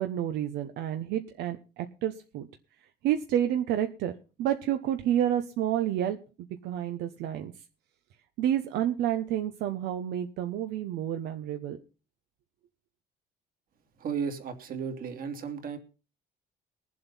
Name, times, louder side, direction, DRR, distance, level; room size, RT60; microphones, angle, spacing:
voice 1, 0.0-2.5 3.0-6.2 6.6-7.5 8.4-11.8, right 11 dB, 85° right, 7 dB, 1.2 m, -29 dB
voice 2, 14.0-15.8, right 6 dB, 60° right, 6 dB, 2.9 m, -34 dB
20.5 x 7.8 x 5.7 m, 0.34 s
cardioid pair, 110°, 17 cm